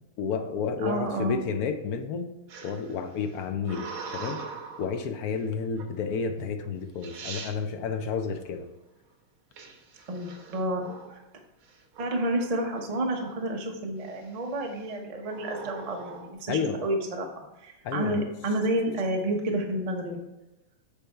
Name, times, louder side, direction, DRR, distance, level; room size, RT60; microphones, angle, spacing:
voice 1, 0.2-2.3 2.6-4.4 4.8-8.7 16.5-16.8 17.8-18.2, left 6 dB, 75° left, 6 dB, 0.8 m, -31 dB
voice 2, 0.8-1.4 10.1-11.2 12.0-17.3 17.6-20.2, right 1 dB, 35° right, 2 dB, 0.6 m, -30 dB
sound 1, 2.5-5.0 5.8-6.2 6.7-6.8 7.0-7.6 9.6-11.2 11.6-12.1 12.4-13.6 14.0-14.5 15.3-16.3, right 5 dB, 85° right, 1.9 m, -42 dB
8.6 x 3.4 x 5.5 m, 0.99 s
omnidirectional pair, 2.2 m